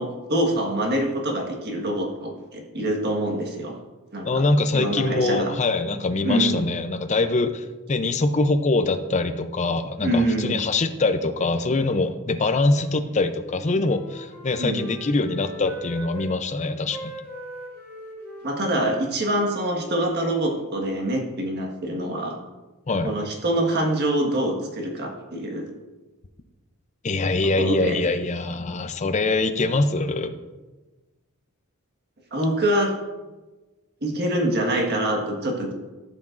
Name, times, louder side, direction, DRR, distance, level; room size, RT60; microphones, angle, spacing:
voice 1, 0.0-3.7 4.1-4.4 4.7-5.5 6.2-6.6 10.0-10.6 14.6-14.8 18.4-22.4 23.0-25.7 27.6-28.0 32.3-32.9 34.0-35.7, right 1 dB, 50° right, 1 dB, 1.5 m, -25 dB
voice 2, 4.2-17.1 22.9-23.1 27.0-30.3, left 3 dB, 30° left, 9 dB, 0.5 m, -23 dB
Wind instrument woodwind instrument, 13.4-16.4 16.9-20.7, equal, 10° left, 2.9 m, -41 dB
14.5 x 5.9 x 2.5 m, 1.2 s
head